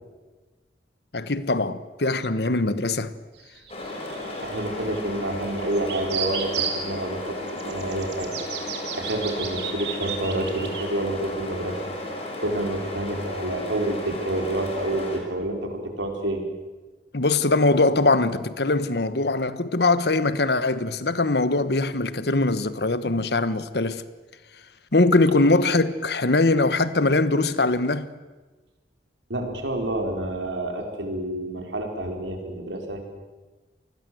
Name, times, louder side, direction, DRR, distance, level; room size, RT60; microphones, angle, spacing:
voice 1, 1.1-3.1 17.1-24.0 24.9-28.1, left 2 dB, 65° left, 1.2 m, -22 dB
sound 1, 3.3-5.0 5.7-6.8 7.5-10.8, right 8 dB, 70° right, 3.6 m, -33 dB
sound 2, 3.7-15.2, left 2 dB, 35° left, 5.3 m, -34 dB
voice 2, 4.4-8.3 8.6-11.8 12.4-16.4 29.3-33.0, right 1 dB, 85° right, 4.7 m, -28 dB
28.5 x 20.0 x 7.8 m
head